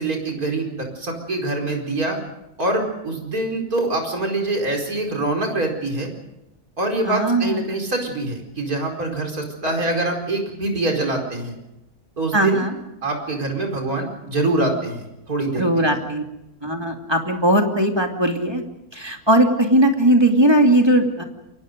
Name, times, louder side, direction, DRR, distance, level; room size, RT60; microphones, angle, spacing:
voice 1, 0.0-2.2 2.6-6.1 6.8-11.6 12.2-12.7 13.0-16.0, right 2 dB, 70° right, 2 dB, 5.2 m, -24 dB
voice 2, 7.1-7.8 12.3-12.7 15.6-16.2 16.6-18.6 18.9-21.2, right 1 dB, 15° right, 3 dB, 2.5 m, -18 dB
28.5 x 24.0 x 5.2 m, 0.90 s
omnidirectional pair, 1.6 m